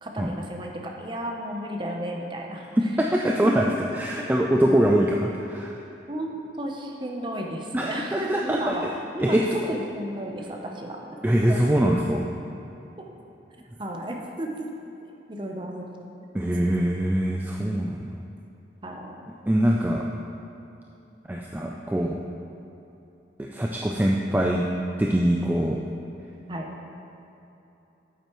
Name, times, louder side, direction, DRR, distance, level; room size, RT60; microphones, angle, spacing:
voice 1, 0.0-2.6 3.2-3.5 6.1-11.0 11.4-11.6 13.8-14.7 15.3-15.9 18.8-19.2 26.5-26.7, right 1 dB, 25° right, 1 dB, 0.7 m, -33 dB
voice 2, 3.0-5.8 7.7-8.8 9.2-9.4 11.2-12.3 16.3-18.1 19.5-20.0 21.3-22.2 23.4-24.6 25.0-25.8, right 1 dB, 10° right, -1 dB, 0.3 m, -23 dB
8.9 x 8.0 x 3.0 m, 2.9 s
head